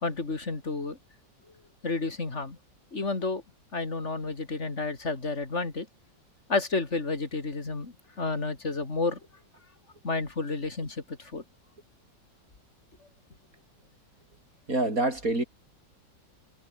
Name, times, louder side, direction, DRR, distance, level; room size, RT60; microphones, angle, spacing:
voice 1, 0.0-1.0 1.8-2.6 2.9-3.4 3.7-5.9 6.5-9.2 10.0-11.4, left 3 dB, 35° left, 3.5 m, -31 dB
voice 2, 14.7-15.4, right 2 dB, 45° right, 7.3 m, -26 dB
omnidirectional pair, 2.0 m